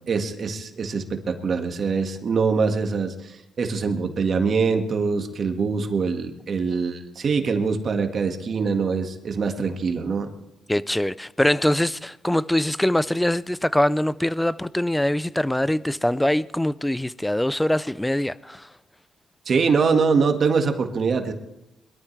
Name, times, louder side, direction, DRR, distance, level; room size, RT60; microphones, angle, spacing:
voice 1, 0.0-10.3 19.5-21.3, right 5 dB, 50° right, 1.8 m, -23 dB
voice 2, 10.7-18.7, left 1 dB, 5° left, 0.5 m, -23 dB
22.0 x 13.0 x 3.3 m
cardioid pair, 90°, 0 cm